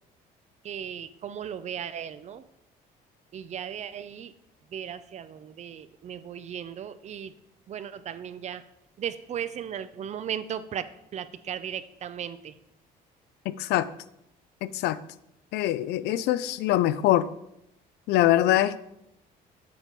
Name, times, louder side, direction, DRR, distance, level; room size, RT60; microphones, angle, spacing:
voice 1, 0.6-2.4 3.3-4.3 4.7-7.3 7.7-8.6 9.0-10.9 11.1-12.5, right 9 dB, 45° right, 13 dB, 0.5 m, -36 dB
voice 2, 13.5-13.9 14.6-15.0 15.5-17.2 18.1-18.8, left 13 dB, 80° left, 16 dB, 0.4 m, -23 dB
7.1 x 5.2 x 4.4 m, 0.82 s
cardioid pair, 110°, 17 cm